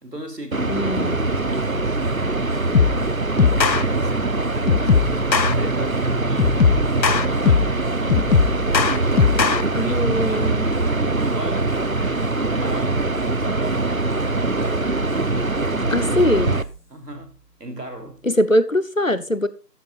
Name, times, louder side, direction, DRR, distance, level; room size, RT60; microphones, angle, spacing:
voice 1, 0.0-2.7 3.3-6.8 7.2-8.5 9.0-14.3 14.6-14.9 15.3-16.6 16.9-18.2, right 1 dB, 70° right, 3.3 m, -37 dB
sound 1, 0.5-16.6, right 2 dB, 55° right, 0.9 m, -23 dB
voice 2, 0.7-1.2 9.7-10.7 15.9-16.6 18.2-19.5, left 1 dB, 50° left, 1.1 m, -21 dB
sound 2, 1.3-18.3, right 2 dB, 35° left, 5.0 m, -34 dB
sound 3, 2.7-3.0 3.4-3.8 4.7-5.5 6.4-7.8 8.1-9.6, left 6 dB, 85° left, 0.8 m, -18 dB
15.5 x 13.0 x 2.5 m
figure-of-eight pair, 175°, 50 cm